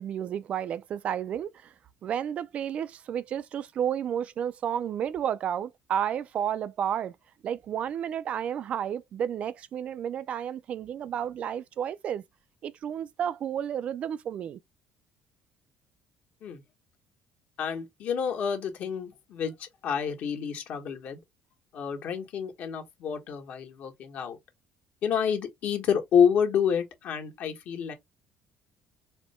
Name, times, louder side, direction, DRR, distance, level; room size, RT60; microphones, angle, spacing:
voice 1, 0.0-1.7 2.0-7.2 7.4-12.2 12.6-14.6, right 9 dB, 45° right, 0.3 m, -31 dB
voice 2, 17.6-21.2 21.7-24.4 25.0-27.9, left 7 dB, 55° left, 1.5 m, -28 dB
4.3 x 2.2 x 4.2 m
cardioid pair, 145°, 3 cm